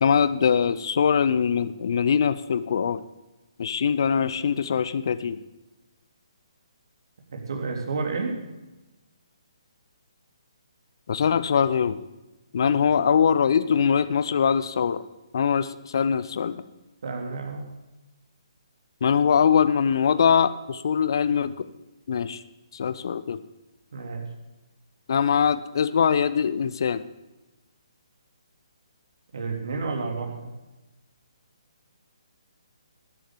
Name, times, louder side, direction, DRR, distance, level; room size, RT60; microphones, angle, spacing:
voice 1, 0.0-3.0 3.6-5.4 11.1-12.0 12.5-15.0 15.3-16.6 19.0-21.7 22.1-22.4 22.7-23.4 25.1-27.0, left 7 dB, 45° left, 13 dB, 0.9 m, -22 dB
voice 2, 7.3-8.4 12.6-12.8 17.0-17.7 23.9-24.2 29.3-30.4, right 4 dB, 55° right, 1 dB, 3.5 m, -30 dB
19.5 x 7.7 x 8.5 m, 1.1 s
figure-of-eight pair, 135°, 3 cm